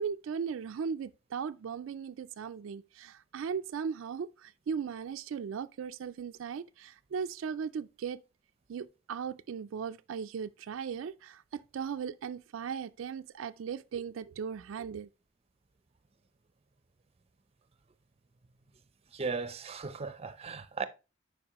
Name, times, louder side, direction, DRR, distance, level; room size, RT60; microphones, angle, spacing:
voice 1, 0.0-8.2 8.7-15.1, right 6 dB, 80° right, 0.3 m, -37 dB
voice 2, 19.1-20.8, right 4 dB, 30° right, 0.6 m, -36 dB
8.6 x 5.2 x 2.9 m
head